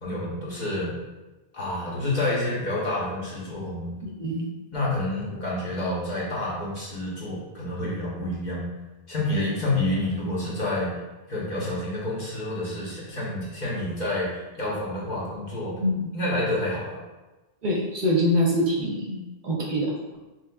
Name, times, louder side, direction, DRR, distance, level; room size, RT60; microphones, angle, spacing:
voice 1, 0.0-0.9 1.5-3.9 4.7-8.6 9.1-10.9 11.3-15.8 16.1-17.0, left 1 dB, 50° left, -6 dB, 1.1 m, -28 dB
voice 2, 4.0-4.5 15.8-16.1 17.6-20.2, equal, 55° right, -3 dB, 0.7 m, -25 dB
5.6 x 2.4 x 2.3 m, 1.1 s
omnidirectional pair, 1.0 m